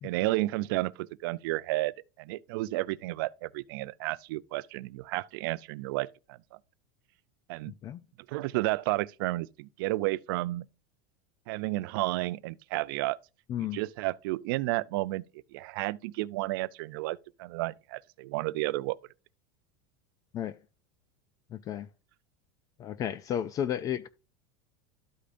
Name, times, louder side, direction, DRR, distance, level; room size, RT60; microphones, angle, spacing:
voice 1, 0.0-6.1 6.5-6.6 7.5-7.7 8.3-10.6 11.5-13.2 13.7-15.2 15.5-19.0, right 19 dB, 70° right, 0.4 m, -32 dB
voice 2, 7.7-8.0 13.5-13.8 20.3-20.6 21.5-21.9 22.8-24.1, left 10 dB, 30° left, 0.4 m, -33 dB
12.5 x 5.0 x 2.6 m
supercardioid pair, 140°, 12 cm